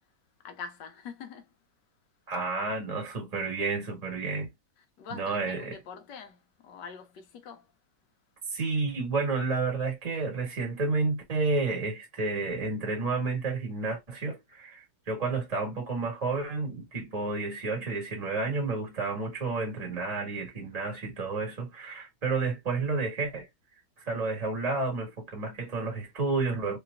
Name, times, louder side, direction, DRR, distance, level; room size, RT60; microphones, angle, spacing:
voice 1, 0.4-1.5 5.0-7.6, left 6 dB, 75° left, 1.4 m, -44 dB
voice 2, 2.3-4.5 5.1-5.8 8.5-23.5 24.0-26.8, right 3 dB, 25° right, 1.4 m, -31 dB
3.3 x 3.1 x 2.3 m
omnidirectional pair, 1.9 m